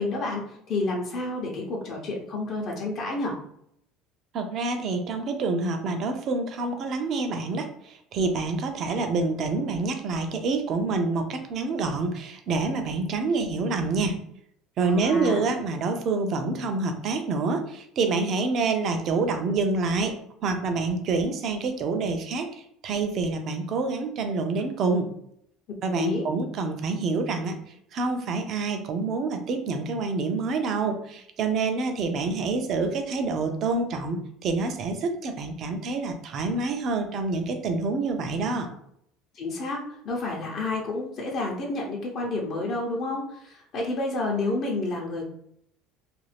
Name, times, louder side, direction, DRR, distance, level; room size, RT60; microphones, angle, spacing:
voice 1, 0.0-3.4 14.8-15.5 25.9-26.3 39.3-45.2, left 2 dB, 50° left, -1 dB, 0.7 m, -30 dB
voice 2, 4.3-14.2 14.8-20.1 20.4-25.1 25.8-27.5 27.9-38.7, right 3 dB, 50° right, 5 dB, 0.5 m, -27 dB
2.5 x 2.3 x 3.3 m, 0.72 s
supercardioid pair, 105°, 0 cm